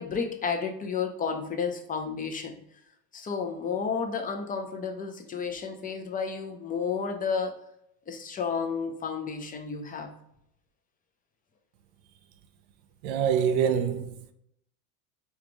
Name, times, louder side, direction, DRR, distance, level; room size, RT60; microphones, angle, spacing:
voice 1, 0.0-2.5 3.1-7.5 8.1-10.1, left 5 dB, 15° left, 0.6 m, -31 dB
voice 2, 13.0-14.3, right 8 dB, 90° right, 0.6 m, -25 dB
5.0 x 2.4 x 3.0 m
supercardioid pair, 105°, 49 cm